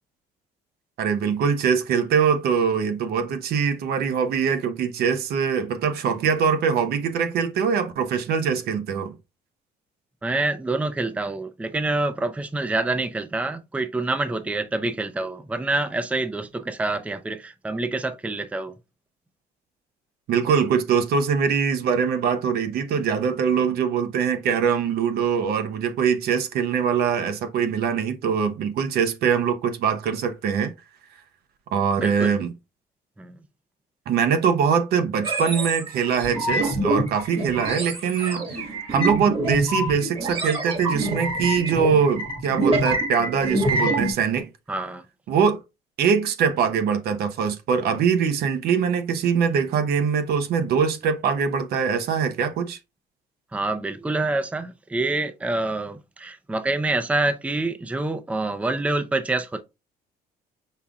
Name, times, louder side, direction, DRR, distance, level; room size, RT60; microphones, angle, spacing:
voice 1, 1.0-9.1 20.3-30.7 31.7-32.5 34.1-44.5 45.3-45.6 46.0-52.8, right 6 dB, 70° right, 0.8 m, -23 dB
voice 2, 10.2-18.7 32.0-32.3 33.2-33.4 44.7-45.0 53.5-59.6, right 2 dB, 10° right, 0.5 m, -26 dB
sound 1, 35.2-44.1, right 1 dB, 35° right, 1.5 m, -26 dB
5.6 x 3.6 x 2.3 m
cardioid pair, 110°, 17 cm